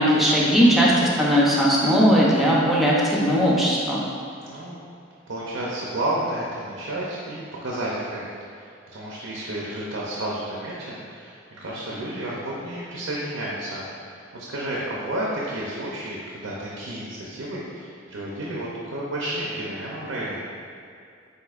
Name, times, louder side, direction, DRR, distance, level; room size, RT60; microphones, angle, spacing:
voice 1, 0.0-4.0, equal, ahead, -6 dB, 0.6 m, -18 dB
voice 2, 4.4-4.8 5.3-8.2 8.5-20.5, right 1 dB, 85° right, -5 dB, 0.7 m, -31 dB
7.8 x 2.7 x 2.5 m, 2.5 s
head